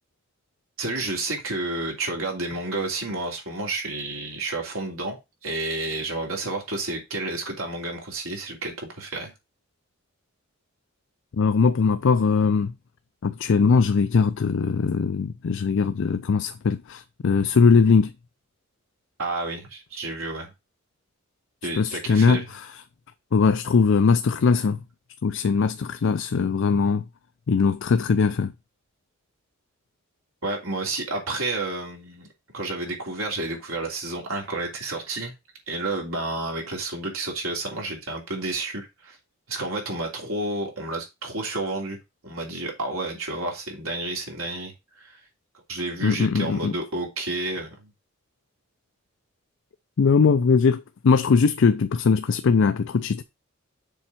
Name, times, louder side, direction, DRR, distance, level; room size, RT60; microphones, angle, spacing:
voice 1, 0.8-5.2 5.4-9.3 19.2-20.5 21.6-22.4 30.4-32.3 32.5-35.3 35.7-39.2 39.5-42.0 42.2-45.2 45.7-47.9, right 2 dB, 90° right, 3.1 m, -30 dB
voice 2, 11.3-12.7 13.2-18.1 21.8-22.8 23.3-24.8 25.2-27.0 27.5-28.5 46.0-46.7 50.0-53.2, left 5 dB, 65° left, 0.4 m, -20 dB
7.0 x 4.3 x 5.8 m
head